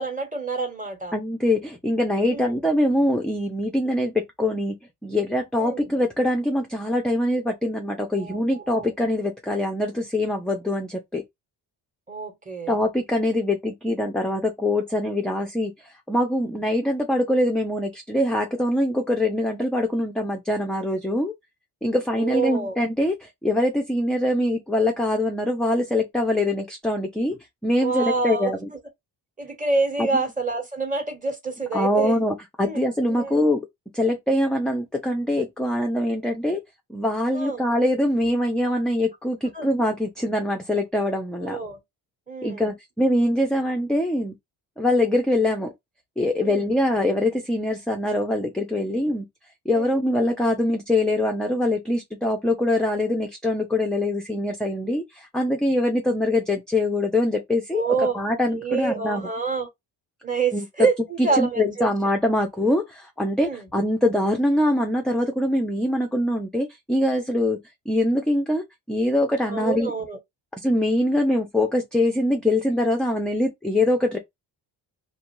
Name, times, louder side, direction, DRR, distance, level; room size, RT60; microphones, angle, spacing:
voice 1, 0.0-1.1 2.3-2.6 5.6-5.9 8.2-8.9 12.1-12.8 22.1-22.8 27.8-28.5 29.4-32.2 32.6-33.4 37.3-37.6 39.5-39.7 41.4-41.8 42.3-42.7 46.4-46.7 49.7-50.0 57.7-58.2 58.5-59.7 60.2-61.9 63.4-63.7 69.5-70.2, right 4 dB, 15° right, 1.2 m, -27 dB
voice 2, 1.1-4.8 5.0-11.2 12.7-15.7 16.1-21.3 21.8-28.7 30.0-30.2 31.7-33.7 33.9-36.6 36.9-41.6 42.4-44.3 44.8-45.7 46.2-49.3 49.7-57.8 58.1-59.3 60.5-60.7 61.2-67.6 67.9-69.9 70.6-74.2, left 1 dB, ahead, 0.5 m, -23 dB
2.6 x 2.3 x 3.0 m
cardioid pair, 80°, 46 cm